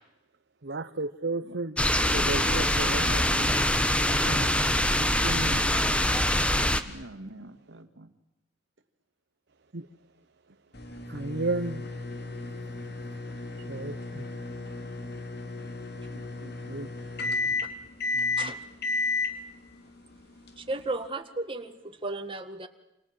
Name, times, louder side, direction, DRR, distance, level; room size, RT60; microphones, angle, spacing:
voice 1, 0.6-1.8 2.1-3.2 4.0-5.6 9.7-9.9 11.1-11.8 13.7-14.3 16.1-16.9 18.1-18.5, right 2 dB, 60° right, 8 dB, 1.0 m, -34 dB
sound 1, 1.8-6.8, left 1 dB, 5° left, 1.3 m, -24 dB
voice 2, 2.9-3.7 6.8-8.1, right 1 dB, 75° right, 8 dB, 2.2 m, -44 dB
sound 2, 10.7-21.1, left 3 dB, 60° left, 3.4 m, -33 dB
voice 3, 20.6-22.7, right 2 dB, 30° right, 6 dB, 1.9 m, -34 dB
28.5 x 27.0 x 7.7 m, 0.88 s
head